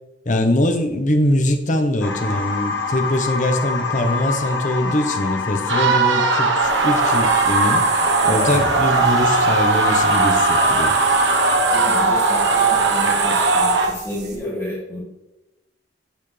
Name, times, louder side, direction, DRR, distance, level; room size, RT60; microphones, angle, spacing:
voice 1, 0.2-7.9 8.2-10.9, left 1 dB, 45° left, 6 dB, 1.2 m, -22 dB
sound 1, 2.0-11.6, left 4 dB, 80° left, 1.3 m, -26 dB
sound 2, 5.7-13.9, right 3 dB, 80° right, 1.3 m, -18 dB
sound 3, 6.6-14.4, right 6 dB, 60° right, 3.8 m, -31 dB
voice 2, 11.7-15.0, left 1 dB, 15° left, -7 dB, 2.7 m, -31 dB
10.5 x 8.5 x 3.4 m, 0.96 s
head